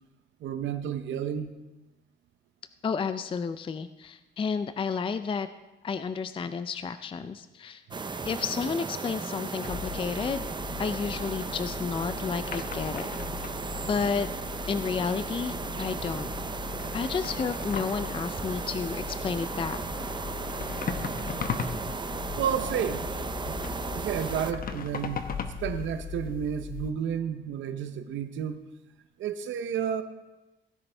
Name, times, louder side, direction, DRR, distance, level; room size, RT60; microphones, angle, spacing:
voice 1, 0.4-1.5 22.4-23.6 23.9-25.3 25.6-28.6 29.2-30.0, right 8 dB, 70° right, 10 dB, 0.7 m, -31 dB
voice 2, 2.8-5.5 5.8-7.8 8.3-10.4 10.8-13.1 13.9-14.3 14.7-16.3 16.9-19.8, left 5 dB, 25° left, 11 dB, 0.4 m, -31 dB
sound 1, 7.9-24.5, right 4 dB, 25° right, 0.6 m, -35 dB
sound 2, 9.6-26.9, left 7 dB, 45° left, 1.0 m, -38 dB
Screaming, 17.0-20.8, left 3 dB, 70° left, 2.5 m, -53 dB
16.5 x 9.6 x 3.4 m, 1.1 s
cardioid pair, 90°, 20 cm